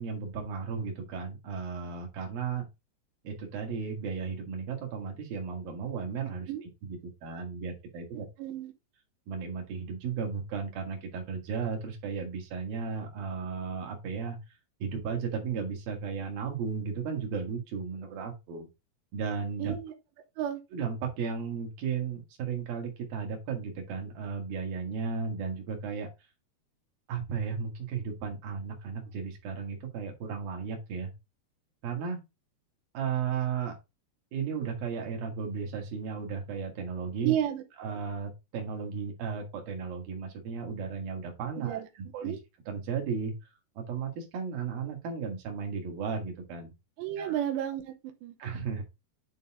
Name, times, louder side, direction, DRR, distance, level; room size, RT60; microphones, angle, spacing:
voice 1, 0.0-2.6 3.2-6.5 6.8-8.3 9.3-14.4 14.8-18.7 19.1-19.7 20.7-26.1 27.1-31.1 31.8-32.2 32.9-33.8 34.3-37.3 37.8-42.3 42.7-43.3 43.8-46.7 47.2-47.3 48.4-48.8, right 6 dB, 60° right, 3.5 m, -34 dB
voice 2, 8.4-8.7 19.6-19.9 20.4-20.6 37.2-37.6 41.6-41.9 42.2-42.4 47.0-48.4, right 11 dB, 90° right, 3.1 m, -32 dB
10.5 x 4.1 x 3.7 m
omnidirectional pair, 4.9 m